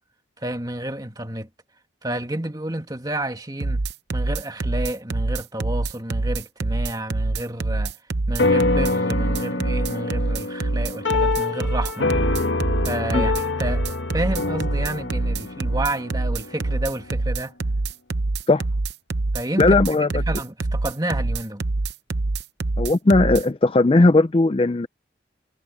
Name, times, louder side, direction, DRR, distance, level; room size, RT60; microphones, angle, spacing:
voice 1, 0.4-1.5 2.0-3.8 4.1-8.0 8.3-12.1 12.8-17.5 19.3-19.8 20.1-21.6, right 1 dB, 20° right, 2.3 m, -30 dB
sound 1, 3.6-23.4, right 2 dB, 60° right, 0.8 m, -25 dB
sound 2, 8.4-17.1, left 3 dB, 80° left, 1.6 m, -26 dB
voice 2, 19.6-20.1 22.8-24.9, left 2 dB, 30° left, 0.4 m, -17 dB
head